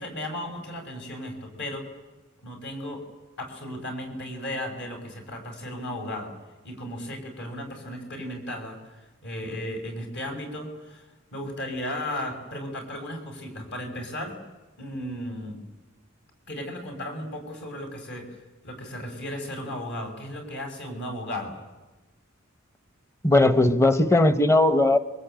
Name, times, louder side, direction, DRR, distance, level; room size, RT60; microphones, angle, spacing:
voice 1, 0.0-1.9 2.4-3.0 3.4-6.3 6.6-11.0 11.3-14.4 14.8-15.6 16.5-18.3 18.6-21.6, left 1 dB, 55° left, 4 dB, 6.3 m, -35 dB
voice 2, 23.2-25.0, left 2 dB, 15° left, 11 dB, 1.1 m, -18 dB
27.0 x 24.0 x 9.1 m, 1.1 s
head